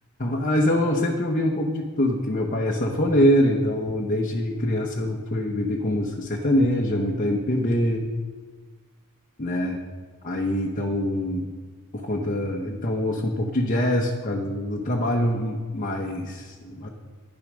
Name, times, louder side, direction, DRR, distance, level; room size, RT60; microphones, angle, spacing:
voice 1, 0.2-8.1 9.4-9.8 10.2-11.5 11.9-16.9, left 1 dB, 35° left, 0 dB, 1.0 m, -24 dB
12.0 x 9.9 x 6.2 m, 1.5 s
head